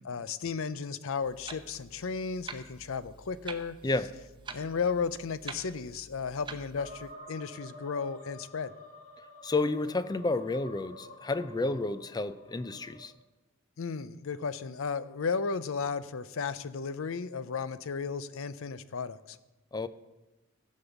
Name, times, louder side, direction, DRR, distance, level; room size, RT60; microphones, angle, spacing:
voice 1, 0.0-3.7 4.5-8.7 13.8-19.4, left 5 dB, 70° left, 0.6 m, -34 dB
Clock, 1.2-7.1, right 4 dB, 20° right, 0.8 m, -47 dB
sound 1, 6.7-13.1, equal, 40° left, 1.9 m, -49 dB
voice 2, 9.4-13.1 19.7-19.9, left 2 dB, 20° left, 0.4 m, -31 dB
15.0 x 5.5 x 7.0 m
head